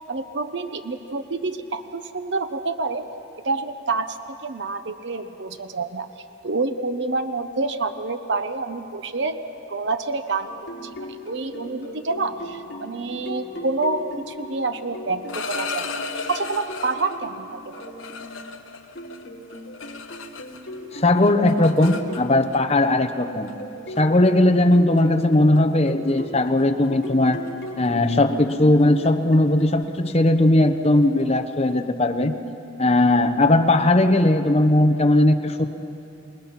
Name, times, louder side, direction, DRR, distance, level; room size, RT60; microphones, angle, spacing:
voice 1, 0.1-3.1 3.4-6.1 6.4-9.4 9.7-10.9 11.2-15.9 16.3-17.9, right 3 dB, 60° right, 9 dB, 0.8 m, -28 dB
sound 1, 10.4-18.3 18.9-22.6 23.2-29.7, equal, 55° left, 4.5 m, -38 dB
sound 2, 15.1-17.2 17.7-20.8 21.0-22.6 23.5-23.6 24.0-24.3 24.7-25.0 25.3-25.6 25.9-26.1 26.4-31.8, left 5 dB, 85° left, 1.1 m, -36 dB
voice 2, 20.9-23.5 24.0-27.4 27.8-32.3 32.8-35.6, left 1 dB, 30° left, 6 dB, 0.9 m, -18 dB
28.0 x 19.0 x 5.9 m, 2.8 s
head